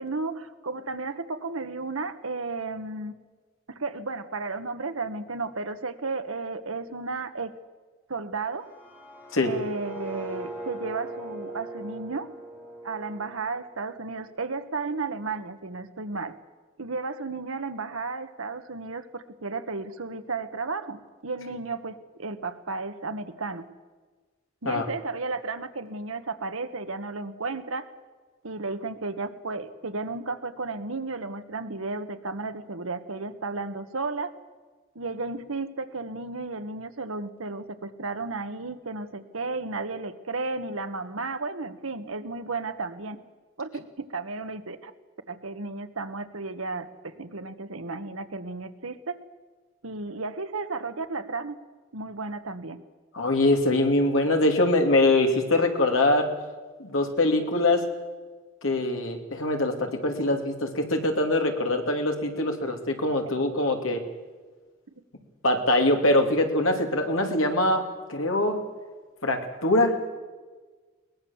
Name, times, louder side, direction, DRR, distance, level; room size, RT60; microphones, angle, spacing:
voice 1, 0.0-3.1 3.7-7.5 8.1-8.7 9.4-12.3 12.8-16.4 16.8-23.7 24.6-27.9 28.4-34.3 34.9-43.2 43.6-44.9 45.3-49.2 49.8-51.6 51.9-52.8, right 3 dB, 85° right, 9 dB, 1.4 m, -33 dB
sound 1, 8.5-14.5, right 2 dB, 10° left, 4.5 m, -41 dB
voice 2, 53.1-56.3 56.8-57.9 58.6-64.0 65.4-67.8 68.1-68.6 69.2-70.0, left 2 dB, 80° left, 4 dB, 2.7 m, -23 dB
22.0 x 19.5 x 7.2 m, 1.4 s
head